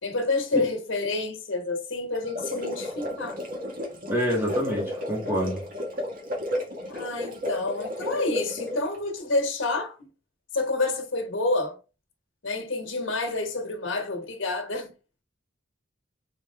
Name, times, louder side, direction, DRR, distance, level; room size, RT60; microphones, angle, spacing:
voice 1, 0.0-3.4 6.9-10.1 10.5-11.8 12.4-14.9, left 2 dB, 90° left, 1.3 m, -28 dB
sound 1, 2.2-9.0, equal, 45° right, 1.5 m, -33 dB
voice 2, 4.1-5.6, equal, 10° right, 1.9 m, -27 dB
4.1 x 3.9 x 3.3 m
head